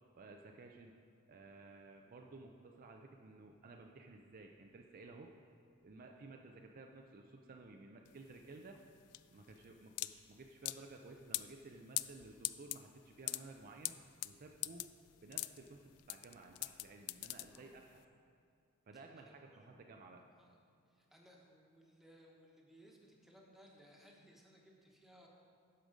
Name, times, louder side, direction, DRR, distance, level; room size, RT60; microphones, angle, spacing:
voice 1, 0.1-0.9 1.3-5.5 5.8-8.8 9.3-13.9 14.2-14.9 15.2-18.0 18.9-20.2, right 3 dB, 40° right, 2 dB, 0.5 m, -55 dB
sound 1, 8.1-18.0, left 18 dB, 90° left, 0.3 m, -43 dB
voice 2, 17.5-17.8 18.9-19.9 20.3-20.6 20.9-25.3, equal, ahead, -2 dB, 1.2 m, -63 dB
12.5 x 5.2 x 5.0 m, 2.3 s
head